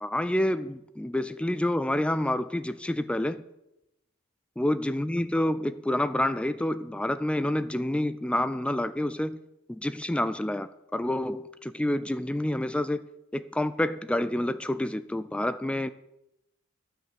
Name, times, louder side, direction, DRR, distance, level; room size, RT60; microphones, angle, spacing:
voice 1, 0.0-3.4 4.6-9.4 9.7-13.0 13.3-15.9, left 1 dB, 5° left, 0.3 m, -28 dB
12.0 x 6.4 x 6.9 m
head